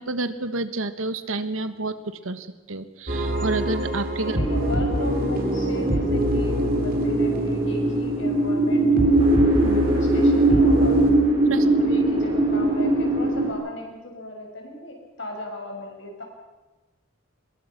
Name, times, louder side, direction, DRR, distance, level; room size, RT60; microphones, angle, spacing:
voice 1, 0.0-4.4 9.6-9.8 11.5-11.6, right 2 dB, 90° right, 11 dB, 1.6 m, -29 dB
sound 1, 3.1-11.1, equal, 45° right, 3.6 m, -26 dB
voice 2, 4.2-9.2 9.6-11.0 11.6-16.2, left 1 dB, 65° left, 2 dB, 5.9 m, -36 dB
sound 2, 4.3-13.5, right 2 dB, 25° right, 4.4 m, -21 dB
23.5 x 21.5 x 6.0 m, 1.1 s
head